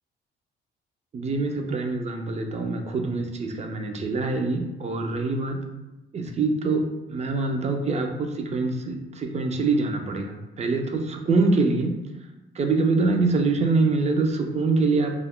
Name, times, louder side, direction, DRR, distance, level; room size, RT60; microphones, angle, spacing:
voice 1, 1.1-5.6 6.1-6.8 7.1-11.9 12.5-15.1, right 3 dB, 35° right, 3 dB, 0.4 m, -24 dB
2.4 x 2.1 x 3.5 m, 1.0 s
cardioid pair, 90°, 20 cm